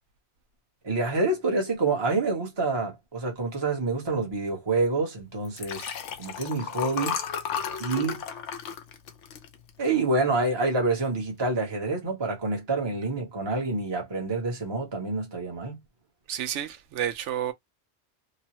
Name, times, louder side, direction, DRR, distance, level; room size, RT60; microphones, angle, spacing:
voice 1, 0.8-7.2 7.8-8.2 9.8-15.8, right 3 dB, 25° right, 0.9 m, -27 dB
Liquid, 5.5-10.1 10.6-10.9 11.1-11.2, left 8 dB, 85° left, 1.0 m, -34 dB
voice 2, 16.3-17.5, right 10 dB, 80° right, 0.9 m, -30 dB
3.0 x 2.0 x 2.8 m
omnidirectional pair, 1.2 m